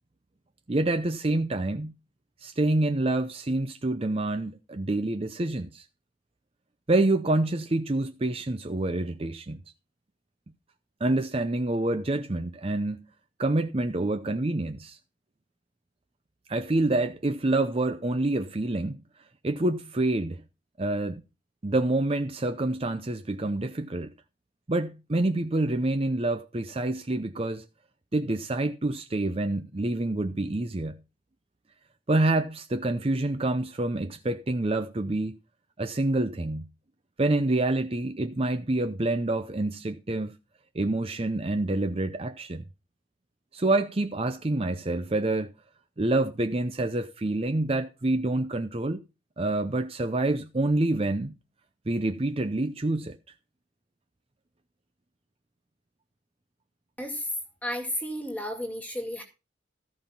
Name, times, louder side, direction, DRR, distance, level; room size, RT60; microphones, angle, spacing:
voice 1, 0.7-1.9 2.4-5.8 6.9-9.6 11.0-13.1 13.4-15.0 16.5-19.0 19.4-20.4 20.8-21.2 21.6-24.1 24.7-27.6 28.1-31.0 32.1-35.4 35.8-36.7 37.2-40.4 40.7-42.6 43.5-45.5 46.0-49.0 49.4-51.3 51.9-53.2, right 2 dB, 30° right, 0.6 m, -27 dB
voice 2, 57.0-57.3 57.6-59.2, left 1 dB, 10° left, 2.1 m, -32 dB
14.0 x 5.4 x 5.7 m
head